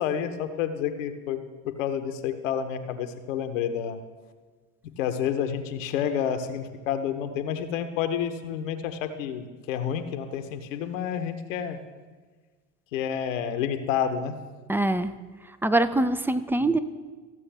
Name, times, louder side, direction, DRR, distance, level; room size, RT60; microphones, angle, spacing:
voice 1, 0.0-1.4 1.8-4.0 5.0-11.8 12.9-14.3, left 8 dB, 75° left, 8 dB, 0.9 m, -29 dB
voice 2, 14.7-15.1 15.6-16.8, right 2 dB, 5° right, 11 dB, 0.3 m, -23 dB
15.0 x 6.9 x 3.4 m, 1.4 s
hypercardioid pair, 65°, 39 cm